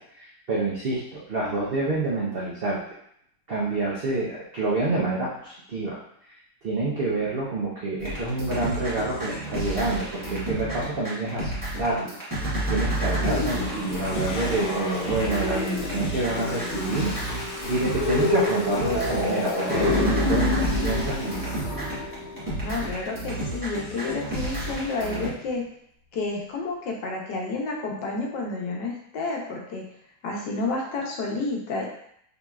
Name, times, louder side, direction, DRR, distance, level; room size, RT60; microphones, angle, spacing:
voice 1, 0.0-2.8 3.5-6.0 6.6-11.5 11.8-12.1 12.4-21.7, right 2 dB, 60° right, -5 dB, 0.6 m, -28 dB
sound 1, 8.0-25.3, right 1 dB, 15° right, 0.8 m, -31 dB
Toilet flush, 13.2-25.6 26.2-26.3, left 3 dB, 65° left, 1.2 m, -39 dB
sound 2, 13.4-22.9, left 2 dB, 20° left, 1.2 m, -29 dB
voice 2, 22.6-25.6 26.1-29.8 30.2-31.8, left 3 dB, 80° left, 0 dB, 1.5 m, -30 dB
5.2 x 2.9 x 2.3 m, 0.69 s
omnidirectional pair, 1.9 m